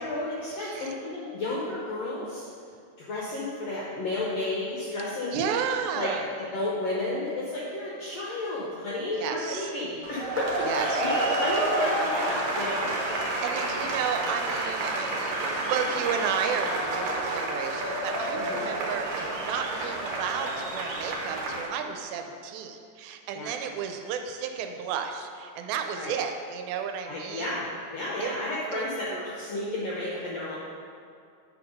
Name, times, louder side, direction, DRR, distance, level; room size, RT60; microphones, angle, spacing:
voice 1, 0.0-2.4 3.0-5.4 5.9-6.1 6.4-13.0 18.4-18.7 23.3-23.5 26.0-26.1 27.1-27.7 27.9-30.5, left 2 dB, 75° left, -5 dB, 1.5 m, -32 dB
voice 2, 0.6-0.9 5.3-6.2 9.2-9.7 10.6-11.4 13.4-27.5 28.2-28.3 28.7-28.8, right 7 dB, 85° right, 5 dB, 2.4 m, -33 dB
sound 1, 10.0-21.7, right 2 dB, 70° right, 1.8 m, -29 dB
7.8 x 4.8 x 5.3 m, 2.4 s
omnidirectional pair, 4.2 m